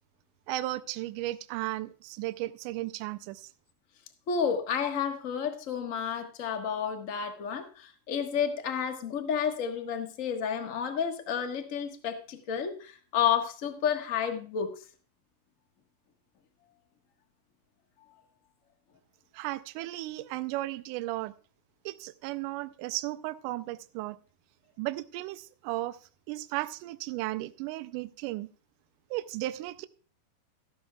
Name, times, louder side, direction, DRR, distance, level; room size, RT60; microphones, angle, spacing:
voice 1, 0.5-3.5 19.3-21.3 21.9-24.2 24.8-26.0 26.3-28.5 29.1-29.9, right 17 dB, 80° right, 2.1 m, -35 dB
voice 2, 4.3-14.7, left 7 dB, 50° left, 0.9 m, -31 dB
14.0 x 12.5 x 2.3 m
omnidirectional pair, 3.8 m